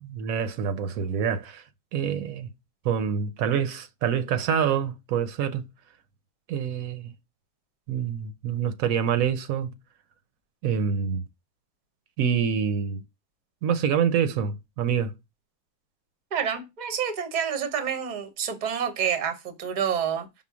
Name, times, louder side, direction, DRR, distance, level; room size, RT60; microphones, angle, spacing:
voice 1, 0.0-1.6 1.9-2.5 2.8-5.7 6.5-7.1 7.9-9.7 10.6-11.2 12.2-13.0 13.6-15.1, right 7 dB, 75° right, 1.0 m, -26 dB
voice 2, 16.3-20.3, right 8 dB, 40° right, 0.7 m, -28 dB
5.5 x 2.1 x 4.6 m
omnidirectional pair, 1.5 m